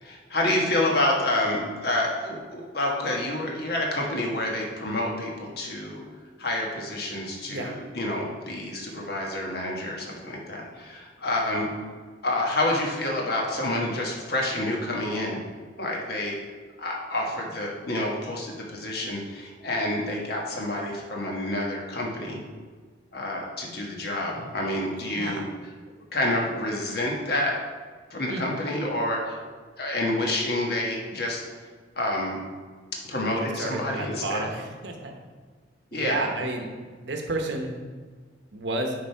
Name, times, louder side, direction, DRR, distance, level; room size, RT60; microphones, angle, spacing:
voice 1, 0.0-6.0 6.4-11.7 12.2-15.4 15.8-16.4 16.8-22.4 23.1-25.5 26.1-27.5 28.1-29.4 29.8-31.5 32.0-32.4 33.1-34.5 35.9-36.3, left 1 dB, 55° left, -1 dB, 1.3 m, -28 dB
voice 2, 25.0-25.4 28.3-28.5 33.6-35.1 35.9-36.7 37.0-37.8 38.5-38.9, right 2 dB, 70° right, 3 dB, 1.0 m, -31 dB
10.0 x 3.5 x 4.5 m, 1.5 s
head